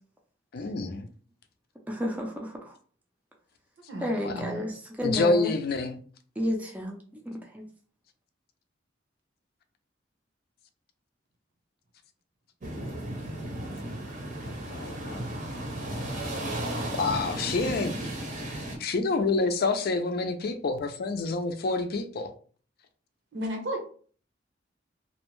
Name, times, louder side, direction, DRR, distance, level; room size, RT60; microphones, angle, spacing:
voice 1, 0.5-1.1 4.2-4.4 5.0-6.0 14.4-15.3 16.9-18.0 18.8-22.3, left 3 dB, 55° left, 0.4 m, -28 dB
voice 2, 1.9-2.7 4.0-5.5 6.4-7.7, left 1 dB, 10° right, 0.4 m, -32 dB
voice 3, 3.9-4.6 23.3-23.8, equal, 75° right, 0.8 m, -34 dB
sound 1, 12.6-18.8, right 1 dB, 45° right, 0.7 m, -34 dB
2.6 x 2.1 x 3.0 m
head